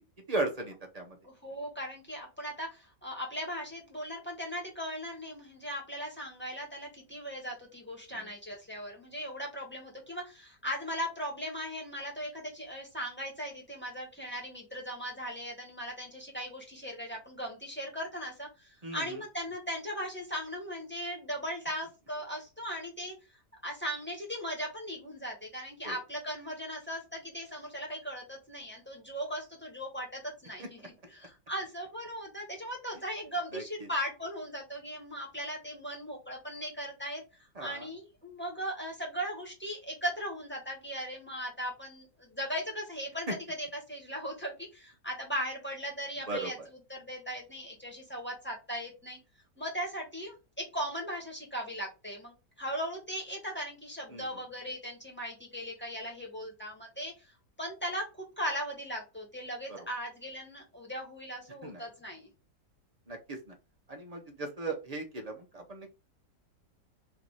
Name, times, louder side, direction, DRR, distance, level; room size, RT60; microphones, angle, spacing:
voice 1, 0.3-1.1 8.1-8.2 18.8-19.2 25.8-26.0 30.6-30.7 33.5-33.9 37.6-37.9 46.3-46.7 54.1-54.2 59.7-59.8 61.6-61.8 63.1-63.5 63.9-65.9, right 2 dB, 35° right, 2 dB, 0.6 m, -37 dB
voice 2, 1.2-23.2 23.6-37.2 37.6-46.5 46.9-49.2 49.6-57.3 57.6-62.3, equal, 5° left, -2 dB, 1.3 m, -38 dB
3.5 x 2.7 x 4.6 m, 0.28 s
omnidirectional pair, 1.8 m